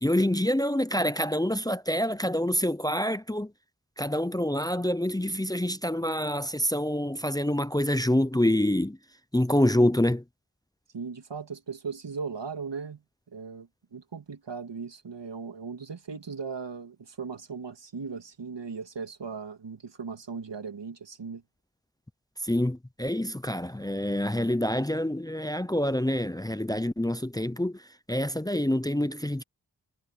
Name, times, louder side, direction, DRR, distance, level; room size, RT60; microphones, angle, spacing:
voice 1, 0.0-3.5 4.0-9.0 9.3-10.2 22.4-29.4, left 1 dB, 10° left, 0.7 m, -26 dB
voice 2, 10.9-13.0 13.3-21.4, right 5 dB, 80° right, 2.4 m, -38 dB
cardioid pair, 45°, 42 cm